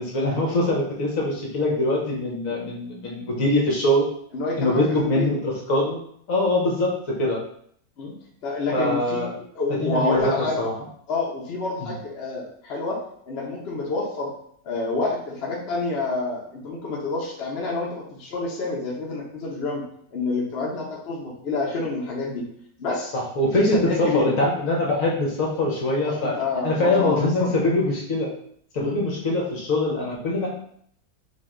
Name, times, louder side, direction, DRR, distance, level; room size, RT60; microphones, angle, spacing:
voice 1, 0.0-4.1 4.6-5.9 6.3-7.4 8.7-9.3 9.7-10.7 11.8-11.9 23.1-26.4 26.6-28.3 28.7-30.5, left 1 dB, 65° left, -3 dB, 1.3 m, -23 dB
voice 2, 4.3-5.3 5.8-6.0 8.0-8.1 8.4-9.2 9.5-10.6 11.1-13.0 13.3-14.3 14.6-19.8 20.1-22.4 22.8-23.1 23.5-24.4 26.0-27.5 28.8-29.0, left 3 dB, 50° left, -3 dB, 1.1 m, -28 dB
5.5 x 2.4 x 3.7 m, 0.66 s
omnidirectional pair, 1.5 m